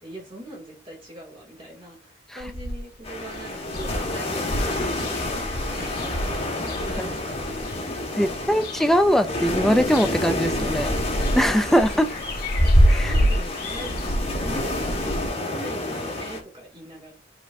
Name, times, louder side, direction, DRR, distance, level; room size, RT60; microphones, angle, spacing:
voice 1, 0.0-7.5 7.9-8.7 13.0-17.1, right 1 dB, 30° right, 2.6 m, -42 dB
sound 1, 2.4-3.0 3.4-3.5 3.7-7.7 8.3-9.1 9.4-15.3, equal, 50° left, 1.8 m, -25 dB
sound 2, 3.0-16.4, left 2 dB, 30° left, 1.7 m, -30 dB
voice 2, 8.2-10.9 11.3-12.1 12.9-13.1, equal, ahead, 0.5 m, -21 dB
10.5 x 4.3 x 2.7 m
head